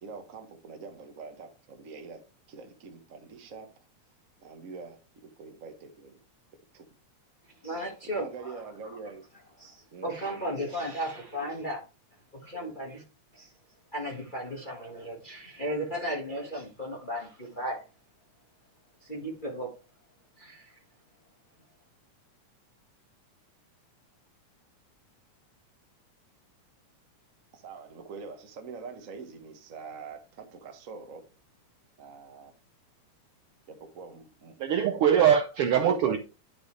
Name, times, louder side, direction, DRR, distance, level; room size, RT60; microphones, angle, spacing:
voice 1, 0.0-2.2 2.5-3.7 4.4-5.0 5.4-6.2 6.7-6.9 8.1-9.2 9.9-10.1 27.5-31.3 32.0-32.5 33.7-35.2, right 5 dB, 60° right, 0.8 m, -44 dB
voice 2, 7.6-8.5 9.6-11.8 12.4-13.0 13.3-13.5 13.9-17.8 19.0-19.7 20.4-20.7, equal, 20° left, 1.4 m, -35 dB
voice 3, 34.6-36.2, right 8 dB, 75° right, 1.3 m, -22 dB
11.0 x 5.4 x 3.2 m
omnidirectional pair, 3.3 m